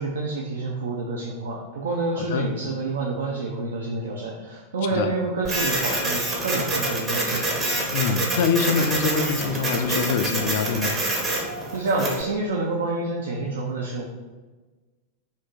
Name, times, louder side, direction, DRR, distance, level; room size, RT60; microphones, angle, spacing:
voice 1, 0.0-7.4 11.7-14.0, right 3 dB, 65° right, -2 dB, 0.4 m, -28 dB
voice 2, 2.2-2.5 4.9-5.1 7.9-11.0, left 5 dB, 55° left, 8 dB, 0.3 m, -24 dB
Printer, 5.5-12.2, right 2 dB, 20° right, 0.7 m, -26 dB
2.7 x 2.6 x 3.6 m, 1.3 s
figure-of-eight pair, 90°, 0 cm